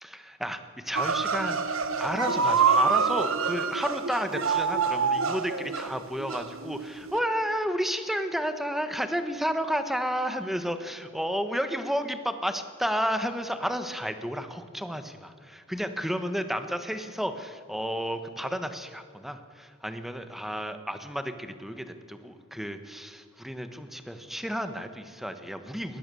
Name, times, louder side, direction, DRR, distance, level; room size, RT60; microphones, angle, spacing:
voice 1, 0.0-26.0, equal, ahead, 8 dB, 1.3 m, -32 dB
sound 1, 0.9-7.2, right 5 dB, 80° right, 1.4 m, -26 dB
21.5 x 19.5 x 7.0 m, 2.1 s
head